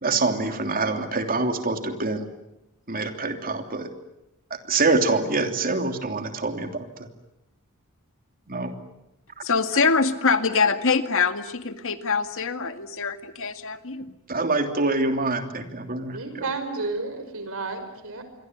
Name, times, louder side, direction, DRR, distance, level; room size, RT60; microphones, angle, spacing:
voice 1, 0.0-2.3 2.9-3.9 4.5-7.1 8.5-8.7 14.3-16.5, right 3 dB, 40° right, 6 dB, 3.1 m, -25 dB
voice 2, 9.4-14.1, left 5 dB, 65° left, 9 dB, 2.0 m, -24 dB
voice 3, 16.1-18.2, right 3 dB, 70° right, 9 dB, 5.5 m, -31 dB
27.0 x 23.5 x 9.4 m, 0.89 s
head